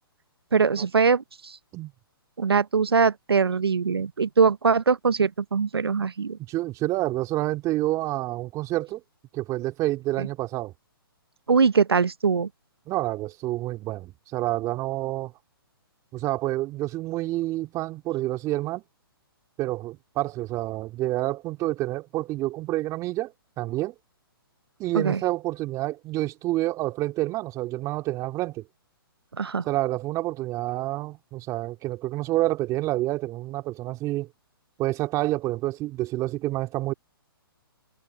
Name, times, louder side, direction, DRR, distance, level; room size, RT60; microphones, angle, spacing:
voice 1, 0.5-1.6 2.4-6.4 10.2-10.3 11.5-12.5 24.9-25.2 29.4-29.6, right 5 dB, 85° right, 1.1 m, -22 dB
voice 2, 6.5-9.0 9.3-10.7 12.9-15.3 16.1-18.8 19.6-23.9 24.8-28.6 29.6-34.3 34.8-36.9, right 17 dB, 25° right, 3.0 m, -28 dB
hypercardioid pair, 130°, 13 cm